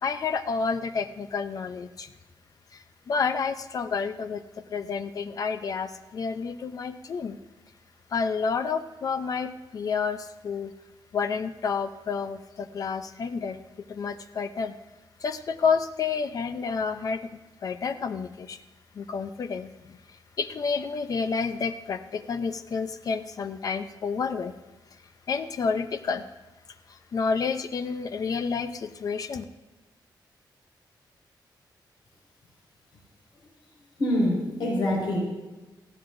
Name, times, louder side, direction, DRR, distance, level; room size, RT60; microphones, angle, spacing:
voice 1, 0.0-2.1 2.7-7.4 8.1-10.7 11.1-13.6 13.9-14.7 15.2-18.6 18.9-24.5 25.3-26.3 26.9-29.4, left 5 dB, 50° left, 10 dB, 0.5 m, -30 dB
voice 2, 34.0-35.2, left 1 dB, 80° left, -3 dB, 5.3 m, -25 dB
19.0 x 14.5 x 2.6 m, 1.1 s
wide cardioid pair, 170°, 8 cm